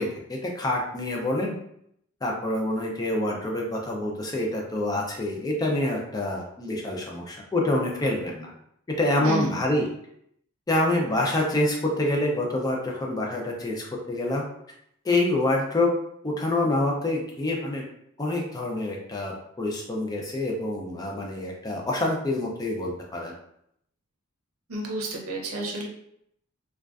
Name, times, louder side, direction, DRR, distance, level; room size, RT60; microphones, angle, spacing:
voice 1, 0.0-1.5 2.2-8.5 9.0-9.9 10.7-14.4 15.0-15.9 16.2-17.8 18.2-23.4, left 1 dB, 20° left, -1 dB, 0.4 m, -26 dB
voice 2, 9.2-9.5 24.7-25.9, right 2 dB, 90° right, 0 dB, 0.6 m, -30 dB
2.4 x 2.2 x 2.3 m, 0.73 s
head